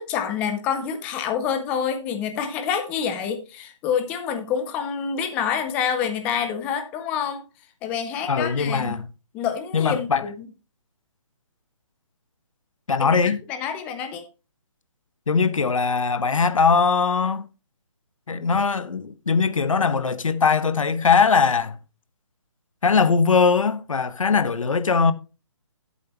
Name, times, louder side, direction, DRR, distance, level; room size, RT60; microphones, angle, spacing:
voice 1, 0.0-7.4 7.8-8.9 9.3-10.3 13.0-13.1 13.5-14.3, left 7 dB, 10° left, 0.6 m, -27 dB
voice 2, 8.3-9.1 9.7-10.2 12.9-13.4 15.3-17.5 18.3-21.8 22.8-25.1, left 5 dB, 80° left, 1.2 m, -20 dB
11.5 x 8.0 x 3.0 m
hypercardioid pair, 165°, 17 cm